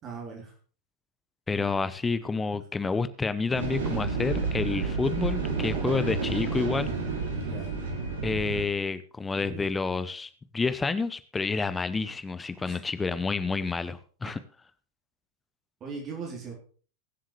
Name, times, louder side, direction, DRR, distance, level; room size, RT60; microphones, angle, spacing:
voice 1, 0.0-0.5 7.4-7.7 9.3-9.6 12.6-12.8 15.8-16.6, right 5 dB, 30° right, 0 dB, 3.2 m, -39 dB
voice 2, 1.5-6.9 8.2-14.4, left 4 dB, 15° left, 13 dB, 0.7 m, -29 dB
sound 1, 3.5-8.6, right 4 dB, 60° right, 2.6 m, -30 dB
22.0 x 7.5 x 3.2 m, 0.41 s
figure-of-eight pair, 90°, 0 cm